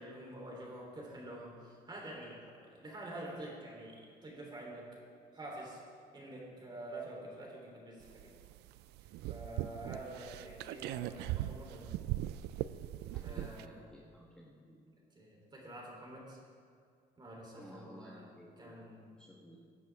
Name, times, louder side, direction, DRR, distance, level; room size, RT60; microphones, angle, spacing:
voice 1, 0.0-5.0 5.3-5.8 6.1-8.3 9.0-12.0 13.2-13.9 15.1-16.4 17.2-18.3 18.6-19.1, right 1 dB, 25° right, -2 dB, 3.5 m, -47 dB
sound 1, 8.0-13.7, right 14 dB, 80° right, 0.4 m, -40 dB
voice 2, 13.1-14.8 17.5-18.8 19.2-19.6, equal, 5° left, -4 dB, 1.3 m, -55 dB
17.0 x 10.0 x 3.6 m, 2.2 s
cardioid pair, 110°, 17 cm